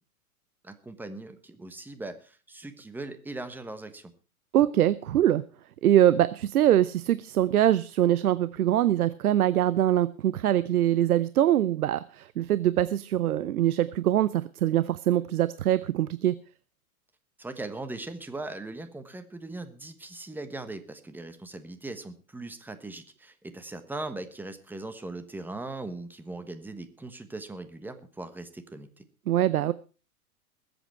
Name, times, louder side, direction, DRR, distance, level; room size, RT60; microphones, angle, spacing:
voice 1, 0.6-4.1 17.4-29.0, right 2 dB, 5° right, 10 dB, 1.2 m, -39 dB
voice 2, 4.5-5.4 5.8-16.4 29.3-29.7, right 12 dB, 80° right, 16 dB, 0.7 m, -23 dB
20.5 x 8.2 x 4.5 m, 0.35 s
hypercardioid pair, 115°, 44 cm